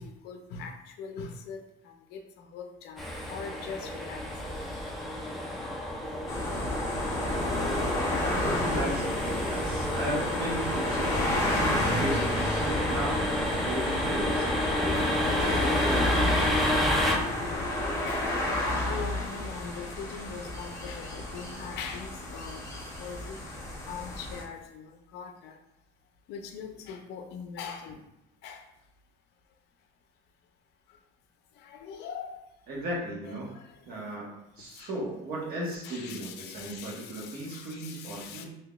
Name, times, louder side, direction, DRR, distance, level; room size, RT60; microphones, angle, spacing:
voice 1, 0.0-4.2 12.3-12.5 14.9-15.1 18.1-18.3 18.9-22.6 23.0-23.4 23.9-25.6 26.3-28.0 28.4-28.6 31.6-32.4 33.2-33.6 34.7-34.9 35.8-38.4, left 6 dB, 65° left, 5 dB, 0.5 m, -42 dB
sound 1, 3.0-17.1, left 1 dB, ahead, 0.3 m, -30 dB
sound 2, 6.3-24.4, left 1 dB, 15° left, 0.7 m, -31 dB
voice 2, 8.7-15.0 15.4-16.7 32.7-33.5 33.9-38.5, right 1 dB, 55° right, -3 dB, 1.1 m, -36 dB
3.8 x 2.6 x 2.3 m, 0.85 s
cardioid pair, 155°, 18 cm